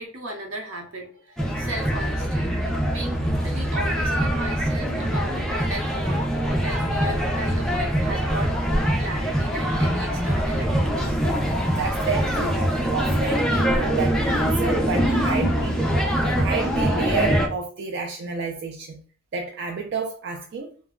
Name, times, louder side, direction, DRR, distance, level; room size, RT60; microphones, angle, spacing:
voice 1, 0.0-2.5 2.9-11.2, right 1 dB, 85° right, 0.9 m, -36 dB
sound 1, 1.4-17.5, equal, 5° left, 0.5 m, -23 dB
voice 2, 11.7-12.6 12.9-15.9 16.2-19.0 19.3-20.7, right 4 dB, 55° right, 0.4 m, -30 dB
2.2 x 2.2 x 3.5 m
head